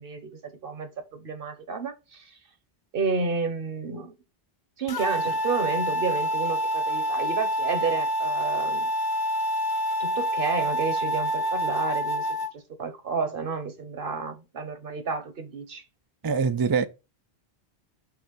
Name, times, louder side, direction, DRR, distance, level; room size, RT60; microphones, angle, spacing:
voice 1, 0.0-2.4 2.9-4.1 4.8-8.9 10.0-15.8, right 4 dB, 60° right, 1.2 m, -31 dB
sound 1, 4.9-12.5, equal, 35° left, 0.4 m, -27 dB
voice 2, 16.2-16.8, right 5 dB, 35° right, 0.3 m, -23 dB
6.2 x 3.1 x 5.2 m
omnidirectional pair, 1.0 m